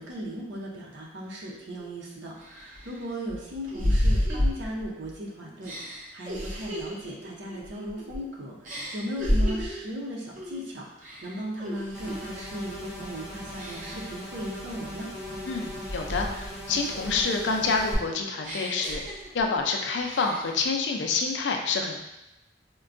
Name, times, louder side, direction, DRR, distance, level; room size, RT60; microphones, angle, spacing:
voice 1, 0.0-15.1, equal, 80° right, -3 dB, 0.7 m, -37 dB
sound 1, 1.8-1.9 2.4-5.1 5.6-8.3 8.6-9.9 10.3-10.6 11.0-12.3 12.7-13.0 13.6-14.1 14.7-16.6 16.9-19.6 20.0-20.6, equal, 45° right, 0.7 m, -31 dB
sound 2, 11.9-17.9, equal, 5° right, 0.7 m, -40 dB
voice 2, 15.5-22.0, left 4 dB, 80° left, 3 dB, 0.4 m, -28 dB
4.4 x 2.2 x 2.5 m, 0.94 s
head